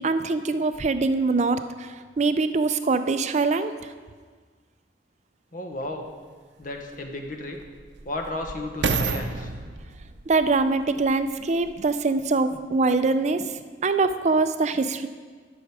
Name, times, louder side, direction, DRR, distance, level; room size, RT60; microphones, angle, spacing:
voice 1, 0.0-1.6 2.2-3.7 10.3-13.4 13.8-15.1, right 3 dB, 40° right, 10 dB, 0.4 m, -23 dB
voice 2, 5.5-6.1 6.6-7.6 8.0-9.5, left 2 dB, 50° left, 4 dB, 1.0 m, -33 dB
sound 1, 5.8-5.9 6.6-11.9 12.6-12.7, right 4 dB, 90° right, 0.6 m, -32 dB
11.5 x 6.1 x 4.8 m, 1.5 s
head